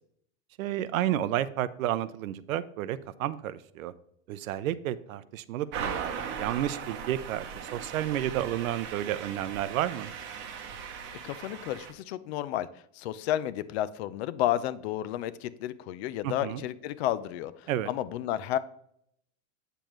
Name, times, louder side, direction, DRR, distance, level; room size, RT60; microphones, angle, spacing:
voice 1, 0.6-3.9 4.3-10.1 16.2-16.6 17.7-17.9, right 12 dB, 90° right, 0.7 m, -31 dB
sound 1, 5.7-11.9, right 7 dB, 30° right, 0.9 m, -38 dB
voice 2, 11.2-12.7 12.9-17.5 17.9-18.6, left 12 dB, 55° left, 0.6 m, -31 dB
8.9 x 6.9 x 3.1 m
supercardioid pair, 160°, 40 cm